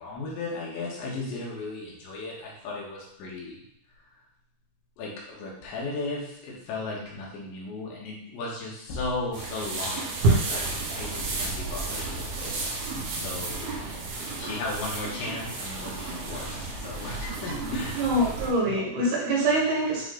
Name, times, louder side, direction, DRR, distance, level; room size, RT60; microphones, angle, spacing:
voice 1, 0.0-3.6 5.0-10.6 10.9-13.8 14.3-18.0, left 2 dB, 80° left, -4 dB, 3.6 m, -36 dB
sound 1, 9.3-18.5, right 3 dB, 85° right, 3.9 m, -31 dB
voice 2, 18.0-20.0, right 1 dB, 65° right, -4 dB, 3.2 m, -25 dB
8.9 x 3.2 x 3.8 m, 0.75 s
omnidirectional pair, 5.2 m